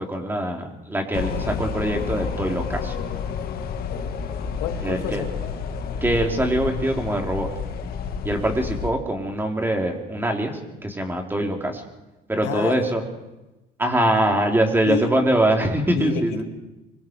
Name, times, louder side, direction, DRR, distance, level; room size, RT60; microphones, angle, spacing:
voice 1, 0.0-2.9 4.8-5.2 6.0-7.5 8.2-11.8 12.3-13.0 13.8-16.4, right 1 dB, 10° right, 2 dB, 3.8 m, -23 dB
sound 1, 1.1-8.9, left 6 dB, 65° left, 2.3 m, -30 dB
voice 2, 4.6-5.5 12.4-12.8 14.9-15.1 15.9-16.4, left 10 dB, 90° left, 5 dB, 2.2 m, -29 dB
25.5 x 23.0 x 4.8 m, 1.0 s
cardioid pair, 110°, 17 cm